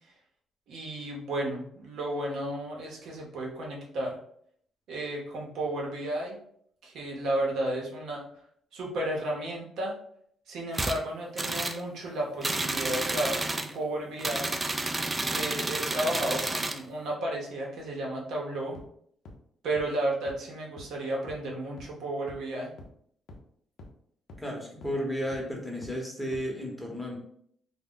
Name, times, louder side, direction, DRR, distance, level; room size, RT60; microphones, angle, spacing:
voice 1, 0.7-4.2 4.9-6.4 6.8-8.2 8.7-9.9 10.5-14.6 15.3-18.8 19.6-22.7, right 1 dB, 75° right, -2 dB, 0.7 m, -33 dB
sound 1, 10.7-11.0 11.4-11.8 12.4-13.7 14.2-16.8, right 2 dB, 20° right, 0.3 m, -30 dB
sound 2, 18.7-18.8 19.2-19.3 19.8-19.9 20.3-20.4 20.8-20.9 21.3-21.4 21.8-21.9 22.3-22.4 22.8-22.9 23.3-23.4 23.8-23.9 24.3-24.4 24.8-24.9 25.3-25.4 25.8-25.9 26.3-26.4, left 1 dB, 70° left, 0.5 m, -45 dB
voice 2, 24.4-27.2, equal, 5° left, -1 dB, 0.8 m, -33 dB
2.1 x 2.0 x 3.7 m, 0.65 s
cardioid pair, 90°, 0 cm